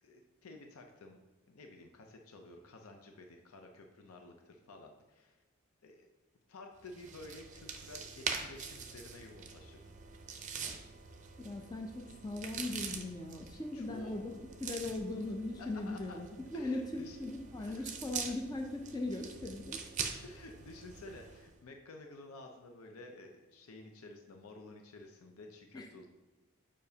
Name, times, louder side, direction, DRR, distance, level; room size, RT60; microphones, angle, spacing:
voice 1, 0.0-1.2 1.5-5.4 5.8-6.1 6.5-9.9 13.7-14.1 15.6-16.2 16.5-17.3 17.7-17.9 20.2-26.1, left 2 dB, 85° left, 3 dB, 0.6 m, -52 dB
sound 1, 6.8-21.5, right 6 dB, 35° right, 0.5 m, -44 dB
voice 2, 11.4-14.3 14.6-16.3 16.5-19.8 25.7-25.9, left 2 dB, 20° left, 3 dB, 0.4 m, -39 dB
6.8 x 5.1 x 2.8 m, 1.2 s
head